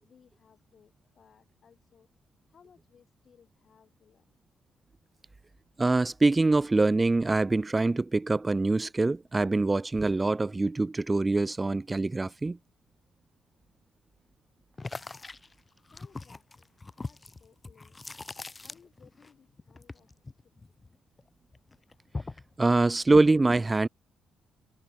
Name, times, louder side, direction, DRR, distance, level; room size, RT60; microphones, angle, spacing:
voice 1, 0.0-2.1 2.5-4.3 15.9-16.7 17.0-18.0 18.6-20.1 20.6-20.7, left 7 dB, 50° left, 7.2 m, -61 dB
voice 2, 5.8-12.6 22.6-23.9, right 3 dB, 20° right, 0.5 m, -24 dB
sound 1, 14.8-19.3 19.6-21.2 21.5-22.5, left 3 dB, 25° left, 1.4 m, -41 dB
cardioid pair, 90°, 0 cm